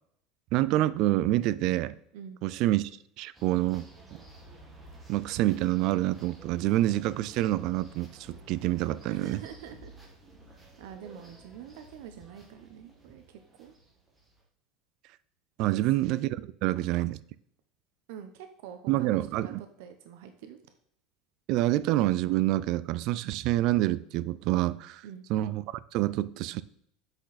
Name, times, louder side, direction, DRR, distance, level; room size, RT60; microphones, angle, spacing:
voice 1, 0.5-1.9 2.4-2.9 3.2-4.2 5.1-9.4 15.6-17.2 18.9-19.6 21.5-25.0 25.3-26.6, right 15 dB, 45° right, 0.3 m, -27 dB
sound 1, 3.3-14.4, right 1 dB, 10° right, 1.6 m, -52 dB
voice 2, 9.1-9.9 10.8-13.7 15.6-15.8 18.1-20.6 25.0-25.2, right 8 dB, 70° right, 0.8 m, -45 dB
7.9 x 6.2 x 4.1 m
cardioid pair, 170°, 0 cm